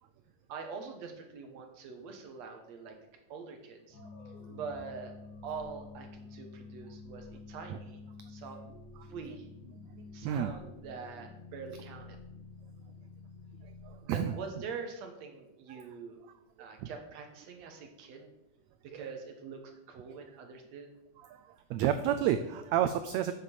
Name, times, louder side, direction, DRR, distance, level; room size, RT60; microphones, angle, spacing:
voice 1, 0.5-3.0 3.3-4.0 4.5-5.1 5.4-8.0 8.3-8.6 9.0-9.5 10.1-12.2 14.0-16.2 16.6-18.3 18.8-20.9, right 5 dB, 65° right, 4 dB, 2.2 m, -44 dB
sound 1, 3.9-14.0, left 3 dB, 75° left, 2.9 m, -49 dB
voice 2, 13.6-14.4 15.7-15.8 16.8-16.9 18.9-19.1 21.3-23.3, right 10 dB, 85° right, 10 dB, 1.5 m, -31 dB
8.5 x 6.0 x 7.1 m, 0.89 s
omnidirectional pair, 3.7 m